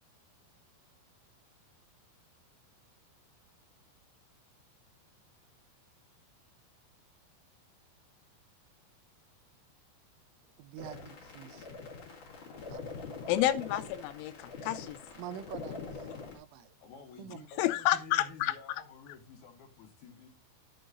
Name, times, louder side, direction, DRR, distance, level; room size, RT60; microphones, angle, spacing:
voice 1, 10.6-11.7 12.7-12.8 15.2-16.8 17.2-17.5, right 10 dB, 85° right, 3.2 m, -46 dB
sound 1, 10.8-16.4, left 4 dB, 40° left, 2.0 m, -44 dB
voice 2, 13.3-15.0 16.0-16.1 17.6-18.8, left 14 dB, 85° left, 3.1 m, -30 dB
voice 3, 16.8-20.3, left 5 dB, 65° left, 2.7 m, -51 dB
11.5 x 7.4 x 2.6 m
omnidirectional pair, 5.5 m